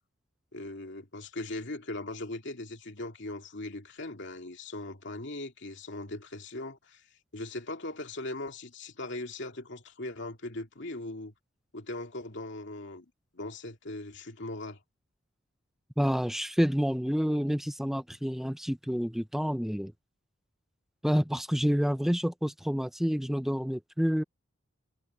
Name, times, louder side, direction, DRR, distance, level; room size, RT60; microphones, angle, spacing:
voice 1, 0.5-11.3 11.7-13.1 13.3-14.8, left 2 dB, 60° left, 2.5 m, -39 dB
voice 2, 16.0-19.9 21.0-24.2, equal, ahead, 0.6 m, -28 dB
head